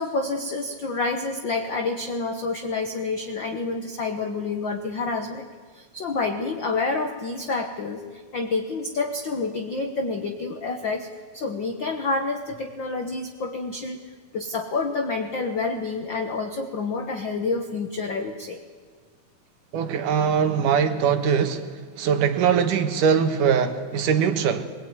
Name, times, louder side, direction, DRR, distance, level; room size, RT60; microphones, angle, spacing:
voice 1, 0.0-5.5 5.7-11.1 11.3-18.6, left 3 dB, 60° left, 5 dB, 1.2 m, -28 dB
voice 2, 19.7-21.7 22.0-24.6, right 7 dB, 70° right, 8 dB, 2.8 m, -21 dB
23.0 x 20.5 x 9.6 m, 1.5 s
omnidirectional pair, 4.1 m